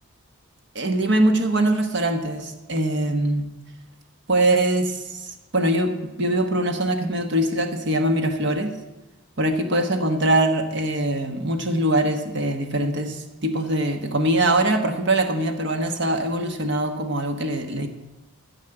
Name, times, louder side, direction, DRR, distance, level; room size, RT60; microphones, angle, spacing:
voice 1, 0.7-3.5 4.3-8.7 9.4-17.9, right 1 dB, 55° right, 6 dB, 1.2 m, -22 dB
12.5 x 5.4 x 8.9 m, 1.1 s
head